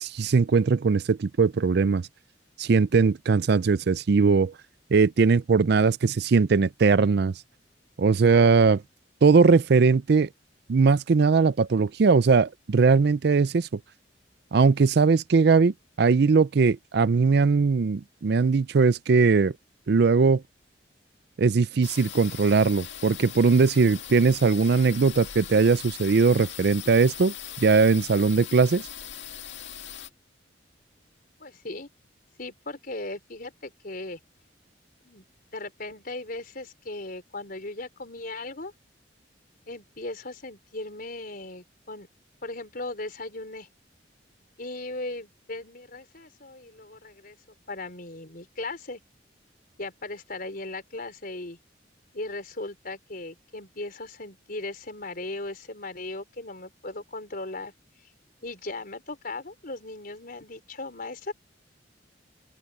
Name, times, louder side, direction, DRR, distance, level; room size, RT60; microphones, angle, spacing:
voice 1, 0.0-2.0 2.6-4.5 4.9-7.3 8.0-8.8 9.2-10.3 10.7-13.8 14.5-19.5 19.9-20.4 21.4-27.3 27.6-28.8, right 4 dB, 60° right, 0.5 m, -20 dB
sound 1, 21.8-30.1, left 10 dB, 80° left, 2.0 m, -40 dB
voice 2, 31.4-31.9 32.4-34.2 35.0-35.2 35.5-38.7 39.7-42.1 42.4-43.7 44.6-47.4 47.7-49.0 49.8-51.6 52.1-57.7 58.4-61.3, left 2 dB, 50° left, 4.7 m, -37 dB
open air
head